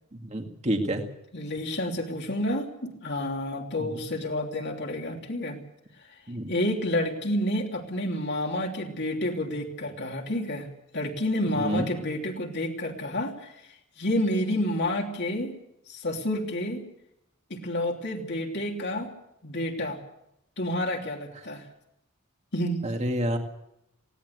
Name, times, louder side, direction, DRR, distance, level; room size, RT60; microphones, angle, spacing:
voice 1, 0.1-1.0 3.8-4.0 6.3-6.5 11.6-11.9 22.8-23.4, right 1 dB, 30° right, 4 dB, 2.2 m, -28 dB
voice 2, 1.3-5.6 6.5-10.7 10.9-13.6 14.0-15.5 15.9-16.8 17.5-19.1 19.4-20.0 20.6-21.6 22.5-22.8, left 1 dB, 50° left, 2 dB, 3.0 m, -29 dB
19.5 x 17.0 x 8.1 m, 0.83 s
head